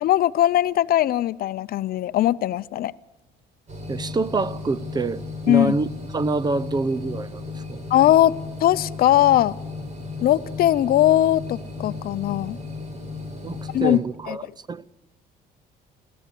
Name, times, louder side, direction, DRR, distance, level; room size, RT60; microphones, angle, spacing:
voice 1, 0.0-2.9 5.5-5.7 7.9-8.3 8.6-9.5 10.2-12.6 13.7-14.0 14.3-14.4, left 13 dB, 60° left, 0.6 m, -19 dB
sound 1, 3.7-14.0, left 3 dB, 45° right, 5.0 m, -35 dB
voice 2, 3.9-5.9 6.1-7.8 13.4-14.9, right 3 dB, 25° right, 0.7 m, -26 dB
24.0 x 14.5 x 8.4 m
cardioid pair, 110°, 17 cm